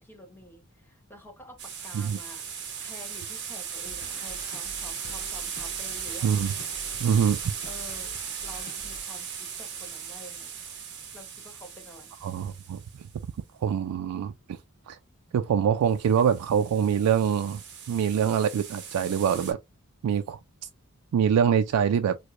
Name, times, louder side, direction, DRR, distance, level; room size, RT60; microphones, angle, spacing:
voice 1, 0.0-6.3 7.6-8.1 8.4-10.5 11.1-12.1, equal, 10° left, 1.1 m, -48 dB
sound 1, 1.6-13.1 16.0-19.5, right 7 dB, 55° right, 1.0 m, -37 dB
sound 2, 3.8-9.0, left 1 dB, 40° left, 0.5 m, -46 dB
voice 2, 6.2-6.5 7.0-7.5 12.2-12.8 13.6-14.6 14.9-15.0 15.3-19.6 20.0-20.4 21.1-22.2, right 7 dB, 85° right, 0.3 m, -24 dB
4.6 x 2.1 x 2.4 m
head